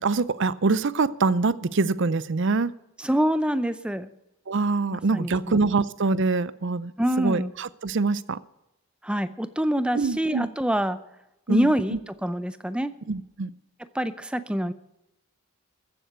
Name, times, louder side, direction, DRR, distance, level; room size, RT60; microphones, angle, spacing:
voice 1, 0.0-2.7 4.5-6.9 7.2-8.4 9.9-10.5 11.5-12.0 13.1-13.5, right 3 dB, 55° right, 0.5 m, -24 dB
voice 2, 3.0-4.1 4.9-5.6 7.0-7.5 9.0-11.0 11.5-12.9 13.9-14.7, right 1 dB, 5° right, 0.5 m, -26 dB
15.0 x 7.8 x 8.0 m
head